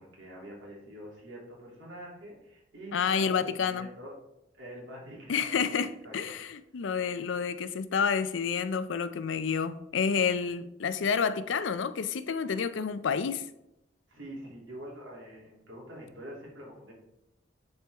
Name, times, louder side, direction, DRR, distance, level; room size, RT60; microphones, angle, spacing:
voice 1, 0.0-4.2 4.6-6.4 14.1-16.9, equal, 85° right, 2.8 m, -45 dB
voice 2, 2.9-3.9 5.3-13.4, left 6 dB, 80° left, 0.5 m, -29 dB
10.5 x 4.4 x 3.5 m
head